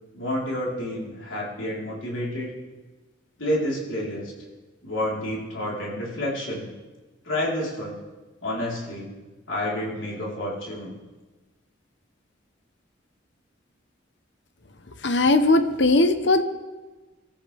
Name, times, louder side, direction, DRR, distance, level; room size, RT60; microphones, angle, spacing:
voice 1, 0.1-2.5 3.4-4.3 4.8-6.7 7.2-8.0 8.4-9.1 9.5-10.9, left 1 dB, 80° left, -4 dB, 4.2 m, -29 dB
voice 2, 15.0-16.4, left 2 dB, 60° left, 9 dB, 1.0 m, -19 dB
25.0 x 14.0 x 3.5 m, 1.2 s
head